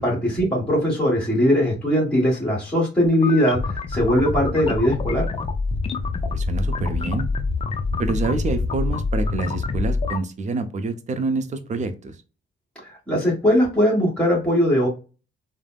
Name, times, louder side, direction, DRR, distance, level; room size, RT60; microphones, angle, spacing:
voice 1, 0.0-5.3 12.8-14.9, equal, 5° left, -3 dB, 1.4 m, -20 dB
sound 1, 3.1-10.2, left 3 dB, 30° left, 0.4 m, -26 dB
voice 2, 6.3-7.3 8.0-12.2, right 3 dB, 35° right, 10 dB, 0.5 m, -27 dB
3.3 x 2.0 x 2.3 m, 0.32 s
cardioid pair, 90°, 20 cm